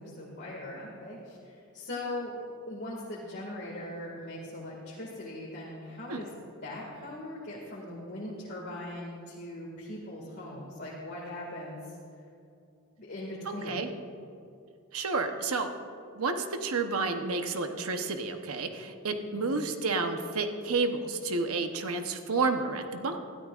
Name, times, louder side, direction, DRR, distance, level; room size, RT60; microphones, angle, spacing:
voice 1, 0.0-2.3 2.7-6.3 6.6-12.0 13.0-13.8 19.3-19.5, left 1 dB, 50° left, -5 dB, 2.0 m, -40 dB
voice 2, 13.5-13.9 14.9-15.7 16.2-23.2, right 3 dB, 85° right, 6 dB, 0.9 m, -30 dB
21.0 x 13.0 x 2.5 m, 2.5 s
head